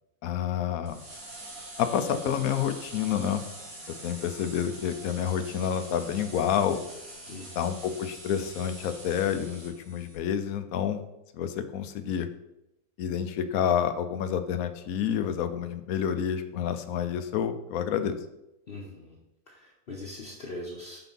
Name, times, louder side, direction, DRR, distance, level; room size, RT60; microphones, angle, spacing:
voice 1, 0.2-1.0 1.8-3.4 4.0-6.8 7.6-11.0 11.3-12.3 13.0-18.2, left 8 dB, 75° left, 10 dB, 1.0 m, -29 dB
sound 1, 0.9-10.2, right 1 dB, 65° right, 2.1 m, -44 dB
voice 2, 7.3-7.6 18.7-19.2 19.5-21.0, left 2 dB, 45° left, -3 dB, 1.0 m, -41 dB
5.8 x 4.0 x 5.5 m, 0.87 s
omnidirectional pair, 1.6 m